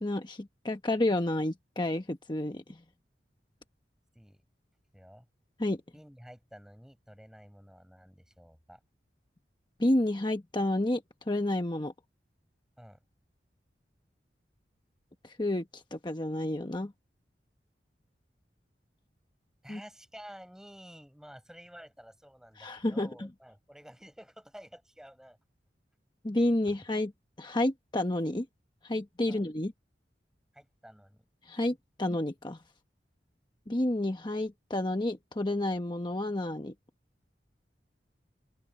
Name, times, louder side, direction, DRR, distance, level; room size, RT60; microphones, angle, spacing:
voice 1, 0.0-2.8 5.6-5.8 9.8-11.0 11.3-11.9 15.2-16.9 19.7-19.8 22.6-23.3 26.2-27.1 27.4-28.5 28.8-29.7 31.5-32.6 33.7-36.7, left 1 dB, 25° left, 1.1 m, -30 dB
voice 2, 4.9-5.3 5.9-8.8 12.8-13.0 19.6-25.4 26.7-26.8 29.3-29.5 30.5-31.3, equal, 5° right, 6.8 m, -51 dB
open air
head